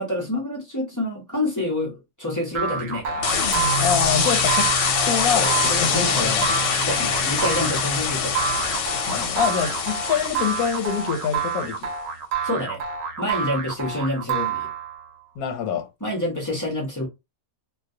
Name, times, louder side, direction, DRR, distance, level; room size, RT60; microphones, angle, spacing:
voice 1, 0.0-3.3 5.3-6.3 6.9-8.4 12.4-12.8 13.2-14.7 16.0-17.1, left 1 dB, 25° left, 0.4 m, -27 dB
sound 1, 2.5-15.1, right 6 dB, 70° right, 0.9 m, -28 dB
sound 2, 3.2-11.4, left 6 dB, 65° left, 0.9 m, -24 dB
voice 2, 3.8-4.7 5.1-6.5 9.1-11.9 15.4-15.9, left 7 dB, 90° left, 1.1 m, -25 dB
2.3 x 2.2 x 2.6 m
omnidirectional pair, 1.5 m